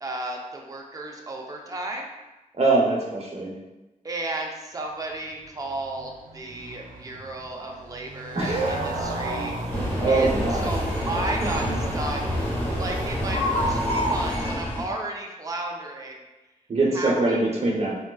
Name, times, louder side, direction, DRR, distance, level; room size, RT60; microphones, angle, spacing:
voice 1, 0.0-2.1 4.0-9.5 10.0-11.6 11.9-12.2 12.7-16.2 16.9-17.6, right 2 dB, 25° right, 1 dB, 0.4 m, -33 dB
voice 2, 2.6-3.5 8.3-8.8 10.0-10.7 11.4-11.8 16.7-17.9, right 2 dB, 50° right, -3 dB, 0.8 m, -23 dB
Motorcycle, 5.2-13.3, right 2 dB, 80° right, 0.6 m, -37 dB
sound 1, 8.4-14.4, left 1 dB, 45° left, 0.8 m, -32 dB
sound 2, 9.7-14.8, equal, 10° left, 0.9 m, -28 dB
3.5 x 2.3 x 2.3 m, 1.1 s
wide cardioid pair, 80°, 14 cm